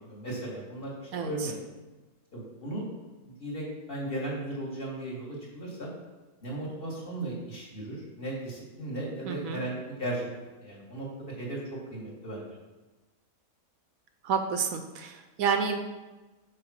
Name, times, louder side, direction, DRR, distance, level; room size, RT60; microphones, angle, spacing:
voice 1, 0.1-1.5 2.3-2.8 3.2-5.9 6.4-10.3 10.6-11.6 11.9-12.5, right 1 dB, 40° left, -4 dB, 2.0 m, -36 dB
voice 2, 1.1-1.5 9.2-9.6 14.2-15.8, right 6 dB, 75° right, 6 dB, 1.0 m, -30 dB
6.0 x 4.2 x 6.2 m, 1.2 s
omnidirectional pair, 1.6 m